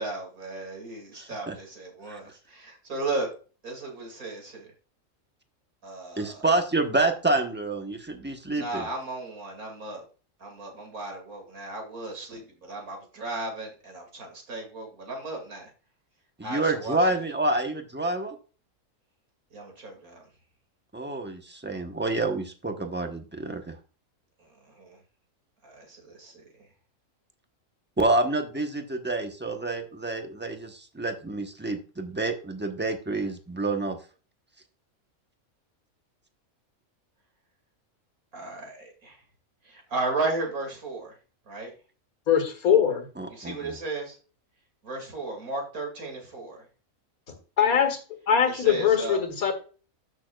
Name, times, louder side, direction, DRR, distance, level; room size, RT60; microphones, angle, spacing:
voice 1, 0.0-3.3 3.6-4.7 5.8-6.4 8.5-10.0 10.4-15.7 16.4-17.2 19.5-20.2 24.4-25.0 25.6-26.7 38.3-39.2 39.6-41.2 41.5-41.7 43.3-44.2 44.8-46.6 48.4-49.2, right 2 dB, 85° right, 2 dB, 3.0 m, -35 dB
voice 2, 1.1-1.5 2.1-2.2 6.2-8.8 16.4-18.4 20.9-23.8 28.0-34.0 43.2-43.7, right 2 dB, 10° right, 5 dB, 0.9 m, -28 dB
voice 3, 42.3-43.1 47.6-48.0 48.3-49.6, left 8 dB, 90° left, 6 dB, 2.1 m, -22 dB
13.0 x 6.3 x 2.4 m, 0.37 s
omnidirectional pair, 1.5 m